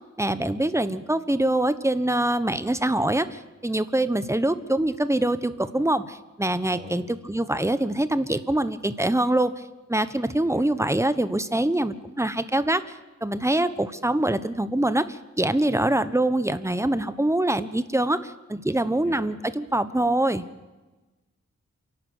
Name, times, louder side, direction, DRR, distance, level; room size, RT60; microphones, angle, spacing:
voice 1, 0.2-9.5 9.9-12.8 13.2-20.4, right 1 dB, 10° right, 12 dB, 1.1 m, -24 dB
voice 2, 6.6-7.0 10.2-10.7 15.7-15.8 18.8-19.2, right 1 dB, 25° right, 1 dB, 7.0 m, -44 dB
28.0 x 12.0 x 8.5 m, 1.2 s
wide cardioid pair, 80°, 29 cm